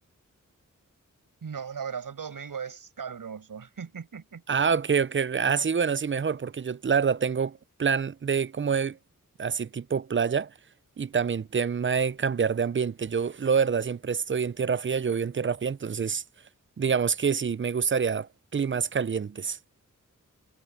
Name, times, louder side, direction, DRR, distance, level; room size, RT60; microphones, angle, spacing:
voice 1, 1.4-4.4, right 6 dB, 90° right, 5.8 m, -37 dB
voice 2, 4.5-9.0 9.4-10.5 11.0-16.2 16.8-19.6, right 6 dB, 35° right, 0.6 m, -26 dB
cardioid pair, 60°, 32 cm